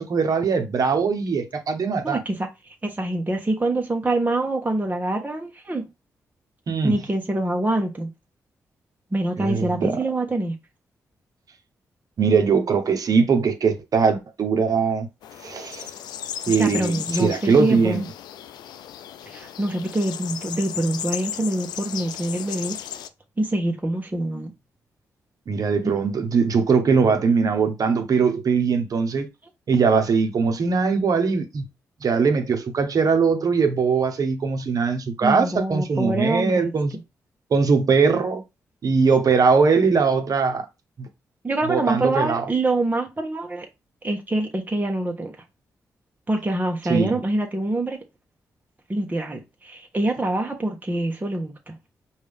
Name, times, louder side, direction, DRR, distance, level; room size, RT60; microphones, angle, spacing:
voice 1, 0.0-2.2 6.7-7.0 9.4-10.0 12.2-15.1 15.4-15.9 16.5-18.0 25.5-29.3 29.7-31.6 32.0-36.9 37.5-38.4 38.8-40.6 41.0-41.1 41.7-42.4 46.9-47.2, right 5 dB, 60° right, 1.1 m, -21 dB
voice 2, 2.0-5.8 6.8-8.1 9.1-10.5 16.5-18.1 19.3-22.8 23.4-24.5 29.7-29.8 35.2-36.7 41.4-43.7 44.0-45.3 46.3-48.0 48.9-51.7, right 2 dB, 25° right, 1.2 m, -25 dB
sound 1, 15.2-23.1, left 10 dB, 85° left, 0.4 m, -35 dB
5.1 x 2.7 x 3.5 m
supercardioid pair, 50°, 7 cm